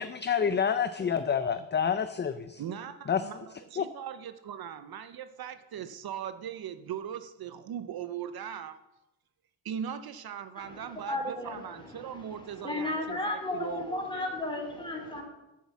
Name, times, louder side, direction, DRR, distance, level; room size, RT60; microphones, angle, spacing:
voice 1, 0.0-2.6 3.1-3.2 3.8-3.9, left 7 dB, 25° left, 11 dB, 0.5 m, -28 dB
voice 2, 2.5-8.8 9.6-14.4, right 9 dB, 60° right, 11 dB, 0.7 m, -39 dB
voice 3, 10.6-15.2, left 2 dB, 10° left, 0 dB, 3.3 m, -35 dB
9.7 x 7.4 x 7.3 m, 0.93 s
cardioid pair, 125°, 41 cm